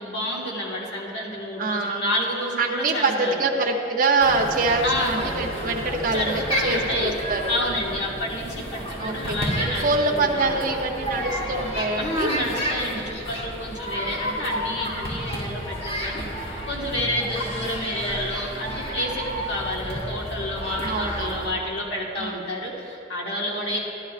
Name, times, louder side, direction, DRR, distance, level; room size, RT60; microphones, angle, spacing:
voice 1, 0.0-3.3 4.8-5.2 6.0-7.1 7.5-10.5 12.0-16.3 16.7-23.8, left 1 dB, 65° left, -3 dB, 1.6 m, -29 dB
voice 2, 1.6-2.0 2.6-7.4 9.0-9.4 9.8-12.3 17.0-17.1 20.8-21.6 22.2-22.5 23.5-23.8, right 3 dB, 45° right, 1 dB, 0.7 m, -25 dB
sound 1, 4.2-21.5, equal, 30° left, 1.2 m, -31 dB
12.0 x 11.5 x 2.5 m, 2.9 s
head